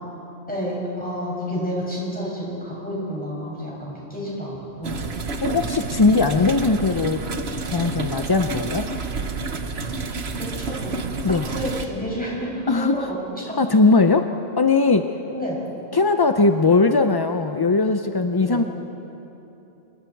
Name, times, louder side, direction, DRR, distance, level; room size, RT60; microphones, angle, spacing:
voice 1, 0.5-5.0 6.1-6.2 10.3-10.9 11.5-13.2 13.5-13.6 15.3-15.6 18.4-18.6, equal, 5° left, -6 dB, 7.1 m, -30 dB
sound 1, 4.8-11.9, right 3 dB, 55° right, 1.4 m, -29 dB
voice 2, 5.4-7.3 7.6-8.9 11.2-11.5 12.7-13.1 13.6-14.3 14.6-15.1 15.9-18.6, left 3 dB, 35° left, 7 dB, 0.3 m, -19 dB
27.5 x 23.0 x 4.7 m, 3.0 s
omnidirectional pair, 1.3 m